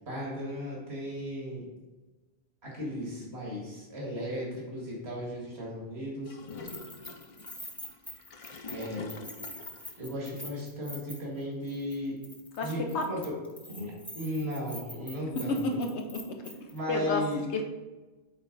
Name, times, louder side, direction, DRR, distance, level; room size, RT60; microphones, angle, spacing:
voice 1, 0.1-1.7 2.6-6.4 8.7-9.2 10.0-12.2 12.6-13.3 13.7-15.8 16.7-17.4, equal, 70° right, -4 dB, 2.3 m, -36 dB
Gurgling / Toilet flush, 6.2-10.0, left 3 dB, 40° left, 0.5 m, -45 dB
Keys jangling, 6.5-11.4 11.7-12.0 12.2-16.8, left 1 dB, ahead, 0.8 m, -45 dB
voice 2, 12.6-13.1 15.4-16.5 16.9-17.6, left 2 dB, 80° left, 2 dB, 1.0 m, -31 dB
8.3 x 4.2 x 3.9 m, 1.2 s
omnidirectional pair, 1.1 m